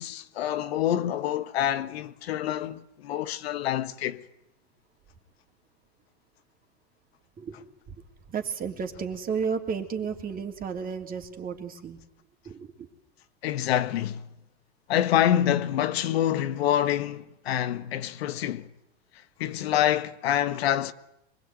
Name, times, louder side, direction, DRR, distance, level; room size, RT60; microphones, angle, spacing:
voice 1, 0.0-4.2 13.4-14.2 14.9-18.7 19.4-20.9, left 11 dB, 70° left, 1.5 m, -26 dB
voice 2, 7.4-7.9 8.3-12.0 12.4-12.9, right 6 dB, 25° right, 3.3 m, -33 dB
25.5 x 21.0 x 9.4 m
hypercardioid pair, 110°, 32 cm